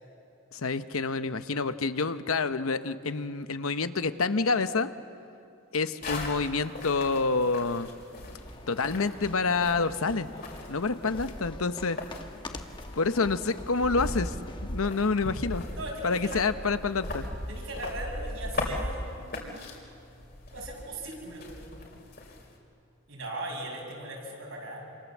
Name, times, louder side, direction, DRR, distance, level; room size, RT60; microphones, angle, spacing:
voice 1, 0.5-4.9 5.7-7.9 8.7-10.3 10.7-12.0 13.0-14.3 14.6-15.6 16.0-17.3, left 4 dB, 90° left, 11 dB, 0.9 m, -28 dB
sound 1, 6.0-22.6, left 1 dB, 45° left, 3.5 m, -39 dB
sound 2, 8.0-15.2, left 2 dB, 20° left, 1.1 m, -46 dB
voice 2, 15.7-16.5 17.5-19.7 20.5-21.4 23.1-24.9, right 1 dB, 75° right, -1 dB, 6.9 m, -39 dB
27.5 x 27.0 x 7.4 m, 2.6 s
head